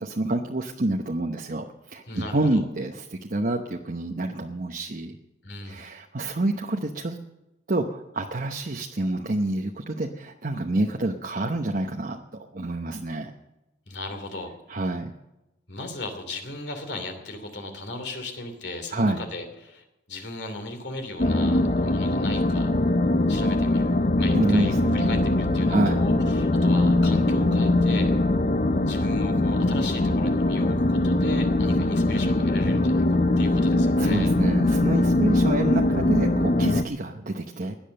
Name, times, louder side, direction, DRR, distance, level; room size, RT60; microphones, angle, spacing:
voice 1, 0.0-5.1 5.7-7.2 7.7-12.2 12.5-13.3 14.7-15.1 18.9-19.2 24.3-25.2 25.7-26.0 34.0-37.8, right 2 dB, 50° right, 2 dB, 0.9 m, -27 dB
voice 2, 2.1-2.6 5.4-5.8 13.9-14.5 15.7-22.7 23.3-28.1 28.8-34.3, left 2 dB, 65° left, 6 dB, 2.9 m, -37 dB
sound 1, 21.2-36.8, left 2 dB, 40° left, 0.6 m, -22 dB
17.0 x 11.0 x 6.6 m, 0.98 s
head